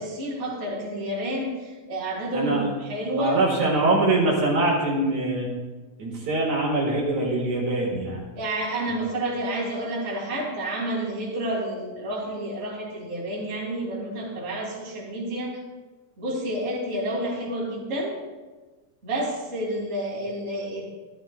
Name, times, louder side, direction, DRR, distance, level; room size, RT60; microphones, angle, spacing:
voice 1, 0.0-3.4 8.4-15.6 16.2-18.1 19.0-20.9, right 1 dB, 25° right, -3 dB, 2.2 m, -29 dB
voice 2, 2.3-2.7 3.1-5.5 6.0-8.2 8.9-9.0, right 2 dB, 65° right, -3 dB, 3.1 m, -23 dB
13.0 x 12.5 x 2.4 m, 1.3 s
omnidirectional pair, 3.6 m